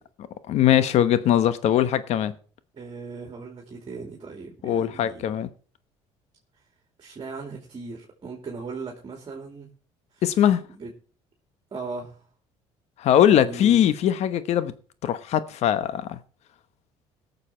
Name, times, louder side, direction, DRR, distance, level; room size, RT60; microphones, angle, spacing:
voice 1, 0.5-2.3 4.6-5.5 10.2-10.6 13.0-14.7 15.0-16.2, left 10 dB, 65° left, 1.0 m, -21 dB
voice 2, 2.7-5.3 7.0-9.7 10.1-10.2 10.7-10.9 11.7-12.2 13.2-13.9, right 4 dB, 40° right, 2.8 m, -38 dB
17.5 x 6.7 x 4.4 m
supercardioid pair, 85°, 12 cm